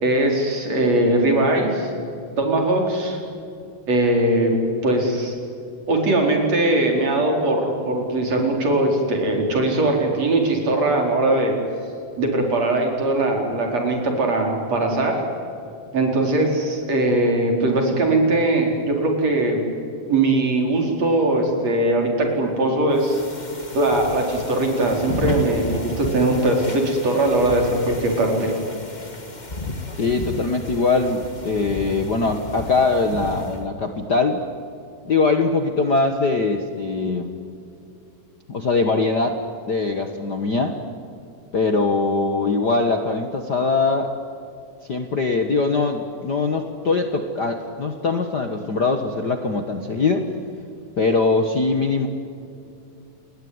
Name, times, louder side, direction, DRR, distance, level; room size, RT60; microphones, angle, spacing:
voice 1, 0.0-1.9 2.4-3.2 3.9-4.6 4.8-5.4 5.9-11.6 12.2-15.2 15.9-19.6 20.1-23.2 23.7-28.5, right 2 dB, 45° right, 2 dB, 5.6 m, -20 dB
sound 1, 22.9-33.6, left 2 dB, 20° left, 1.3 m, -33 dB
voice 2, 30.0-34.4 35.0-37.3 38.5-40.8 41.5-44.1 44.9-50.3 51.0-52.1, left 3 dB, 90° left, 6 dB, 0.9 m, -22 dB
29.5 x 20.5 x 9.7 m, 2.6 s
omnidirectional pair, 4.3 m